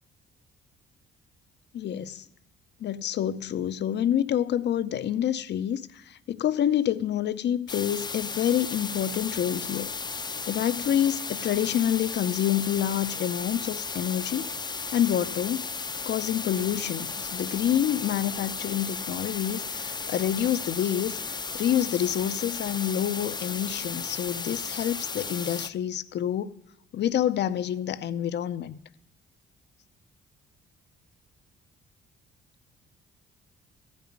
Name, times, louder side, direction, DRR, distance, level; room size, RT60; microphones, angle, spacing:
voice 1, 1.7-2.3 2.8-9.9 10.5-14.5 14.9-15.7 16.1-21.2 21.5-26.6 26.9-28.8, left 10 dB, 60° left, 0.6 m, -27 dB
sound 1, 7.7-25.7, left 4 dB, 20° left, 0.5 m, -35 dB
14.0 x 5.4 x 9.3 m
cardioid pair, 90°, 20 cm